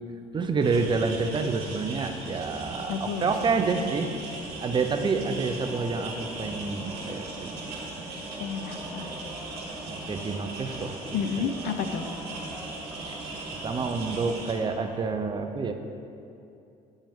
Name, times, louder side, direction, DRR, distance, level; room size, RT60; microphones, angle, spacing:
voice 1, 0.3-4.1 4.6-7.8 8.2-8.3 10.1-11.2 13.1-13.2 13.6-15.7, right 4 dB, 25° right, 6 dB, 0.5 m, -28 dB
sound 1, 0.6-14.5, right 2 dB, 80° right, 1.7 m, -39 dB
sound 2, 0.8-15.1, right 1 dB, 5° right, 0.8 m, -45 dB
voice 2, 2.9-3.3 8.4-9.1 11.1-12.1, left 7 dB, 80° left, 9 dB, 0.5 m, -31 dB
8.8 x 5.4 x 3.6 m, 2.6 s
cardioid pair, 110°, 17 cm